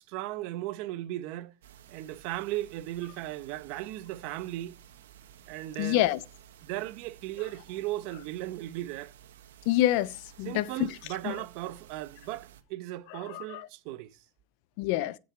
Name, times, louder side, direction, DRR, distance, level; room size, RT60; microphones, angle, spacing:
voice 1, 0.1-1.5 1.9-4.8 5.5-6.0 6.6-9.1 10.4-14.2, right 15 dB, 60° right, 1.2 m, -36 dB
sound 1, 1.6-12.6, right 10 dB, 85° right, 1.9 m, -54 dB
voice 2, 5.8-6.2 9.7-10.9 11.2-11.4 13.3-13.7 14.8-15.2, left 14 dB, 60° left, 0.9 m, -27 dB
16.0 x 6.4 x 4.6 m
supercardioid pair, 120°, 0 cm